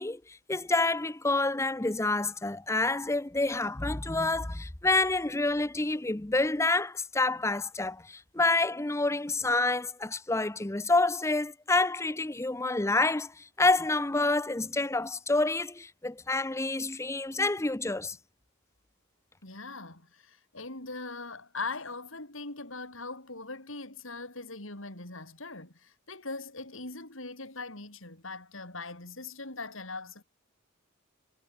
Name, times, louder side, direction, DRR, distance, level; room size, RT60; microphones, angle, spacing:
voice 1, 0.0-18.2, left 2 dB, 15° left, 0.7 m, -28 dB
voice 2, 19.4-30.2, left 3 dB, 65° left, 5.1 m, -41 dB
head